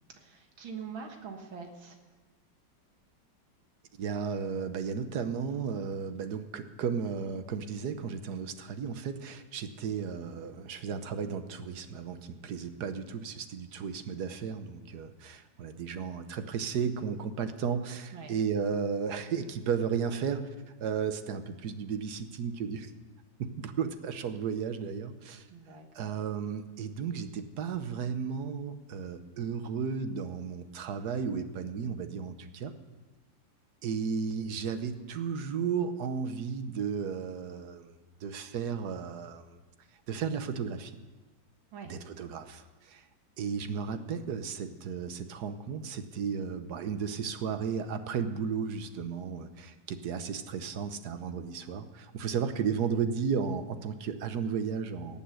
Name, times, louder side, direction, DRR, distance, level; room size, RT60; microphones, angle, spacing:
voice 1, 0.2-2.0 18.1-18.3 25.5-26.2 41.7-41.9 52.4-52.6, right 6 dB, 85° right, 4 dB, 2.3 m, -44 dB
voice 2, 4.0-20.5 20.8-22.9 23.4-25.4 25.9-32.7 33.8-39.6 40.1-40.9 41.8-43.0 43.4-55.2, right 6 dB, 60° right, 9 dB, 1.3 m, -34 dB
18.0 x 7.2 x 7.8 m, 1.2 s
omnidirectional pair, 2.1 m